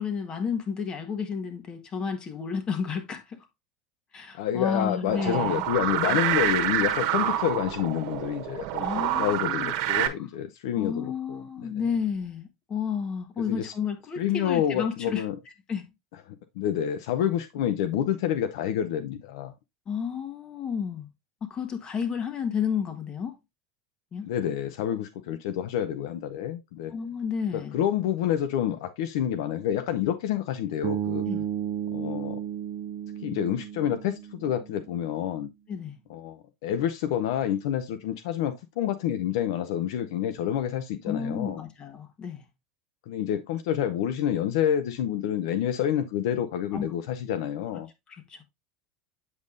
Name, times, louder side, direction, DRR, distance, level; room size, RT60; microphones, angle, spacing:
voice 1, 0.0-3.5 4.1-5.7 6.0-6.2 8.8-10.3 10.8-15.2 15.7-15.9 19.9-21.1 21.4-23.4 24.1-24.3 26.9-27.8 31.2-31.4 35.7-36.0 41.0-42.4 46.7-46.9 48.1-48.4, left 6 dB, 35° left, 1.5 m, -32 dB
voice 2, 4.4-11.8 13.4-13.7 14.2-15.4 16.3-19.5 24.3-26.9 27.5-31.3 31.9-32.4 33.2-35.5 36.1-41.6 43.1-47.9, left 10 dB, 75° left, 0.6 m, -28 dB
sound 1, 5.1-10.1, right 12 dB, 65° right, 1.1 m, -27 dB
Bass guitar, 30.8-34.9, right 10 dB, 50° right, 0.5 m, -33 dB
8.0 x 5.4 x 2.5 m
supercardioid pair, 110°, 3 cm